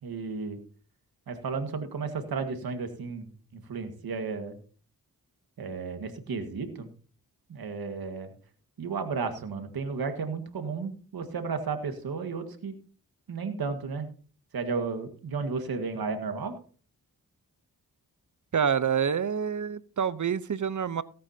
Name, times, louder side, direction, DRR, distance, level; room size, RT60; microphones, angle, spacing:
voice 1, 0.0-0.6 1.3-4.6 5.6-6.9 7.5-8.3 8.8-12.7 13.3-14.1 14.5-16.6, right 4 dB, 85° right, 7 dB, 1.8 m, -33 dB
voice 2, 18.5-21.0, right 7 dB, 55° right, 16 dB, 0.8 m, -27 dB
17.5 x 8.8 x 2.8 m, 0.40 s
cardioid pair, 40°, 36 cm